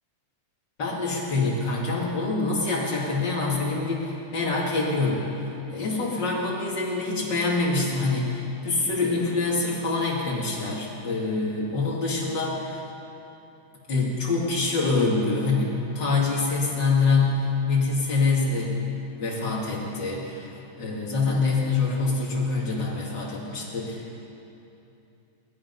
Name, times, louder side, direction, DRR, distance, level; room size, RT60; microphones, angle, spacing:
voice 1, 0.8-12.9 13.9-18.8 19.2-20.5 20.8-24.1, left 3 dB, 35° left, -4 dB, 3.1 m, -25 dB
21.0 x 11.5 x 5.6 m, 2.8 s
omnidirectional pair, 3.6 m